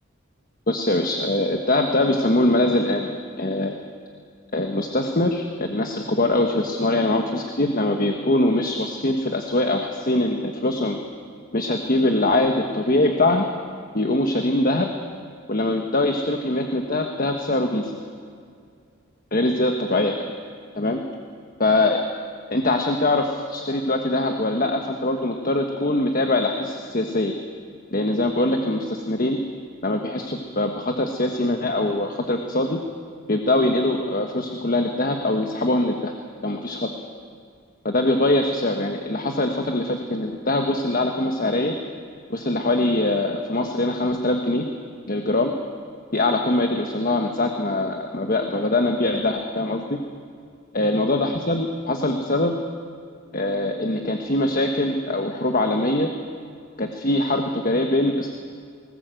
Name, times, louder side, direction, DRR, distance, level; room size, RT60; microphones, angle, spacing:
voice 1, 0.7-3.1 3.4-3.8 4.5-11.0 11.5-13.4 13.9-14.9 15.5-18.0 19.3-20.1 20.7-21.0 21.6-22.0 22.5-27.3 27.9-29.4 29.8-32.8 33.3-36.1 36.4-36.9 37.8-41.7 42.3-44.6 45.1-45.5 46.1-50.0 50.7-52.6 53.3-56.1 56.8-58.3, left 2 dB, 45° left, 4 dB, 1.3 m, -22 dB
19.5 x 19.5 x 7.8 m, 2.2 s
head